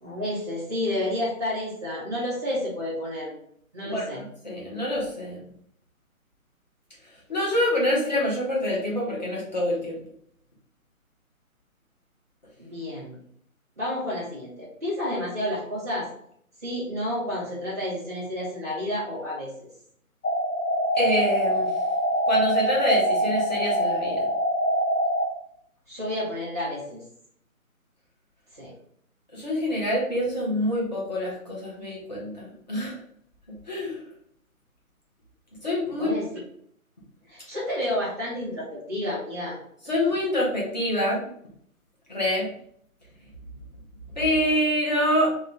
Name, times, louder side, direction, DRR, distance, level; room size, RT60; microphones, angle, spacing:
voice 1, 0.0-3.3 3.7-4.2 12.6-13.2 13.8-16.1 16.6-19.5 25.9-27.0 28.5-28.7 36.0-36.3 37.3-39.6, left 1 dB, 10° right, -10 dB, 0.9 m, -30 dB
voice 2, 3.8-5.4 7.3-10.0 20.9-21.7 22.3-24.3 29.3-33.0 33.7-34.0 35.6-36.1 39.9-41.2 42.1-42.5 44.2-45.3, left 1 dB, 30° left, -5 dB, 1.1 m, -26 dB
sound 1, 20.2-25.2, equal, 75° left, 1.6 m, -24 dB
3.1 x 3.1 x 3.5 m, 0.67 s
hypercardioid pair, 170°, 43 cm